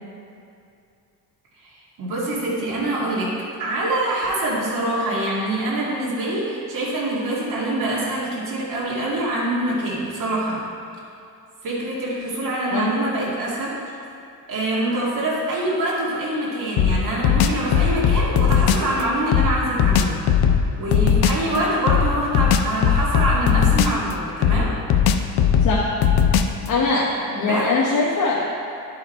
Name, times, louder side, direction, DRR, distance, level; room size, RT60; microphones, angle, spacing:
voice 1, 1.6-10.6 11.6-13.7 14.5-20.2 20.8-24.7 27.3-27.7, right 1 dB, 60° right, -7 dB, 2.1 m, -25 dB
sound 1, 16.8-18.9 19.3-21.5 21.9-24.1 24.4-26.7, left 8 dB, 75° left, 0.6 m, -18 dB
voice 2, 25.6-25.9 26.7-28.4, left 3 dB, 60° left, -4 dB, 1.1 m, -22 dB
11.0 x 4.9 x 4.4 m, 2.5 s
cardioid pair, 120°, 36 cm